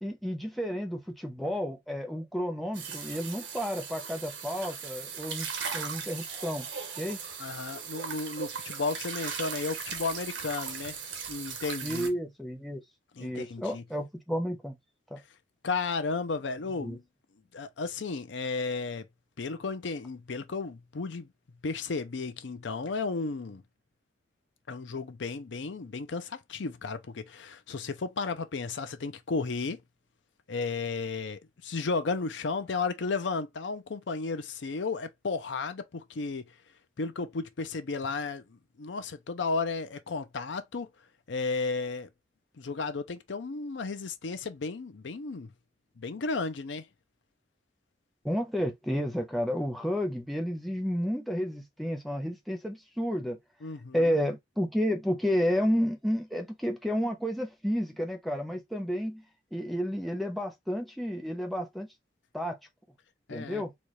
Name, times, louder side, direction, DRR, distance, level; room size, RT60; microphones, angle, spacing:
voice 1, 0.0-5.5 5.7-6.7 7.0-7.2 11.8-12.8 13.2-14.8 15.1-15.2 16.8-17.0 48.2-53.4 53.9-59.2 59.5-61.9 62.3-62.6 63.3-63.7, equal, ahead, 0.7 m, -31 dB
sound 1, 2.7-12.1, right 6 dB, 85° right, 1.0 m, -38 dB
voice 2, 7.4-11.0 11.3-12.1 13.2-13.8 15.6-17.0 17.5-19.1 19.4-21.3 21.6-23.6 24.7-29.8 30.5-36.5 37.0-40.9 41.3-42.1 42.6-45.5 46.0-46.9 53.6-54.1 63.3-63.6, left 4 dB, 85° left, 0.6 m, -33 dB
4.1 x 2.4 x 3.1 m
head